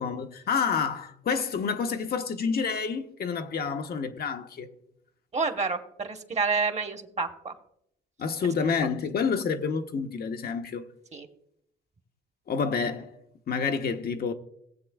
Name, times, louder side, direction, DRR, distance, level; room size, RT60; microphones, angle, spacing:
voice 1, 0.0-4.7 8.2-10.9 12.5-13.1 13.5-14.3, left 5 dB, 50° left, 0.8 m, -28 dB
voice 2, 5.3-7.5 8.4-8.5 11.1-11.3, right 4 dB, 35° right, 1.1 m, -29 dB
18.0 x 7.5 x 2.3 m
cardioid pair, 90°, 20 cm